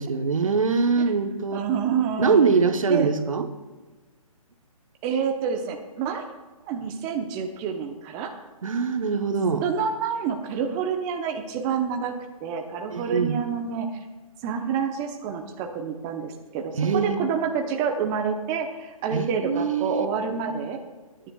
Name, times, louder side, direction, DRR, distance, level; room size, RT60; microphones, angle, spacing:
voice 1, 0.0-1.6 2.2-3.5 8.6-9.7 12.9-13.4 16.7-17.2 19.1-20.1, right 5 dB, 60° right, 7 dB, 1.1 m, -23 dB
voice 2, 1.5-2.4 2.9-3.1 5.0-6.2 6.7-8.3 9.6-12.1 12.4-13.9 14.4-20.8, right 6 dB, 20° right, 4 dB, 0.9 m, -28 dB
22.0 x 9.9 x 2.4 m, 1.2 s
figure-of-eight pair, 140°, 19 cm